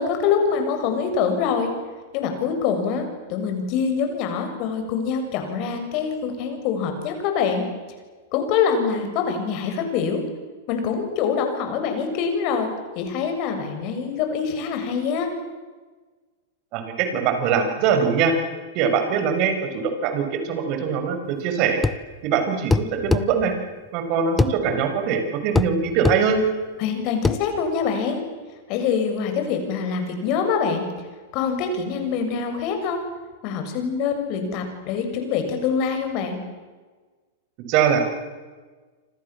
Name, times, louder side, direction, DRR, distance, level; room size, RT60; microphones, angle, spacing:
voice 1, 0.0-1.7 2.1-3.0 3.3-7.7 8.3-10.2 10.7-15.3 26.8-28.2 28.7-30.8 31.3-33.0 33.4-36.4, left 6 dB, 45° left, 6 dB, 7.5 m, -24 dB
voice 2, 16.7-18.3 18.7-21.8 22.2-23.5 23.9-26.4 37.7-38.0, right 6 dB, 45° right, 6 dB, 6.7 m, -22 dB
sound 1, 21.8-22.0 22.7-23.3 24.4-24.6 25.5-25.7 26.0-26.2 27.2-27.4, left 3 dB, 10° left, 1.1 m, -20 dB
29.0 x 26.0 x 7.5 m, 1.4 s
hypercardioid pair, 100°, 0 cm